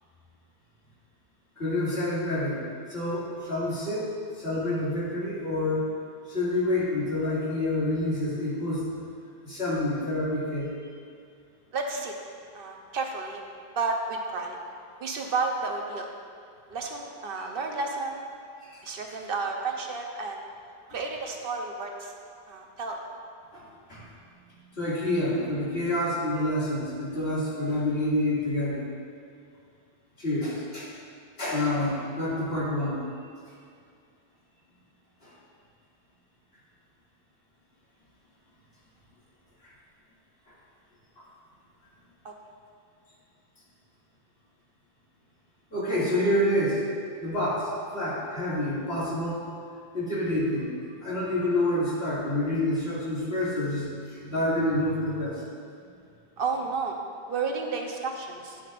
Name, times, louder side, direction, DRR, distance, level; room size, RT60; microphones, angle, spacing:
voice 1, 1.6-5.9 6.3-8.9 9.4-10.7 18.6-18.8 23.5-24.0 24.7-28.9 30.2-30.9 31.4-33.0 35.2-35.3 39.6-39.7 40.5-40.6 41.2-41.3 45.7-46.8 47.2-49.5 49.9-50.7 51.0-55.4, left 1 dB, 75° left, -9 dB, 2.6 m, -28 dB
voice 2, 11.7-12.1 12.5-13.4 13.8-14.6 15.0-16.1 16.7-18.2 18.8-20.4 20.9-22.1 22.5-23.0 42.2-42.3 56.4-57.0 57.3-58.6, right 4 dB, 65° right, 2 dB, 1.0 m, -31 dB
10.5 x 8.7 x 2.5 m, 2.3 s
omnidirectional pair, 1.0 m